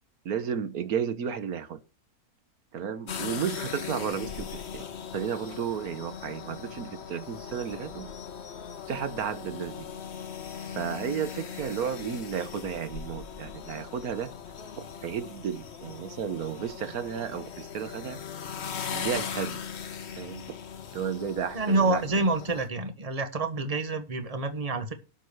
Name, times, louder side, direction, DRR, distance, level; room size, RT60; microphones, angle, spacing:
voice 1, 0.2-1.8 2.7-4.8 5.1-8.1 8.9-9.9 10.5-14.3 14.8-18.2 18.9-19.6 20.2-20.4 20.9-22.2, right 8 dB, 75° right, 1.5 m, -33 dB
sound 1, 3.1-22.7, left 7 dB, 50° left, 1.3 m, -39 dB
voice 2, 21.5-24.9, right 2 dB, 25° right, 1.5 m, -27 dB
12.5 x 6.4 x 6.5 m
omnidirectional pair, 1.6 m